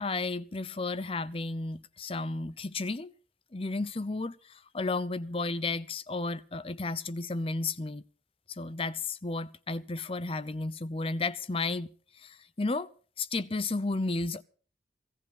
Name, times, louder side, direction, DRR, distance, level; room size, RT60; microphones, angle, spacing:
voice 1, 0.0-3.1 3.5-8.0 8.5-11.9 12.2-12.9 13.2-14.4, left 3 dB, 30° left, 0.7 m, -33 dB
17.5 x 14.5 x 5.5 m
head